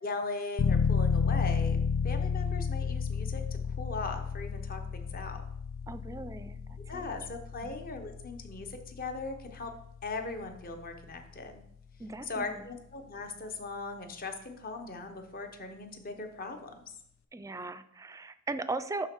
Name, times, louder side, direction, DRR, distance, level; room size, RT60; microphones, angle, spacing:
voice 1, 0.0-1.8 2.0-3.4 3.7-5.4 6.9-9.7 10.0-11.6 12.2-16.7, left 3 dB, 45° left, 5 dB, 0.9 m, -39 dB
sound 1, 0.6-11.1, left 6 dB, 75° left, 0.3 m, -32 dB
voice 2, 5.9-6.6 6.9-7.0 7.6-7.7 12.0-12.7 17.3-19.1, right 2 dB, 15° right, 13 dB, 0.4 m, -38 dB
11.0 x 4.0 x 4.5 m, 0.75 s
head